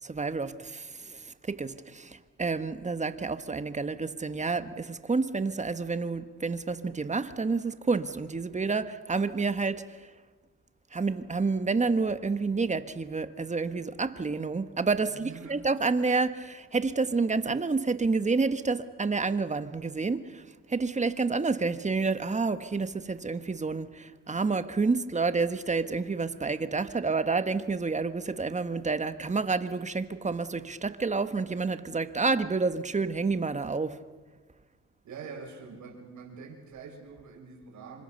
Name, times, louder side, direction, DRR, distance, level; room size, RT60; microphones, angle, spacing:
voice 1, 0.0-9.8 10.9-20.4 20.7-34.0, right 4 dB, 25° right, 1.5 m, -29 dB
voice 2, 15.1-15.6 35.0-38.0, right 5 dB, 70° right, 7.0 m, -45 dB
28.0 x 25.0 x 6.8 m
cardioid pair, 90°, 30 cm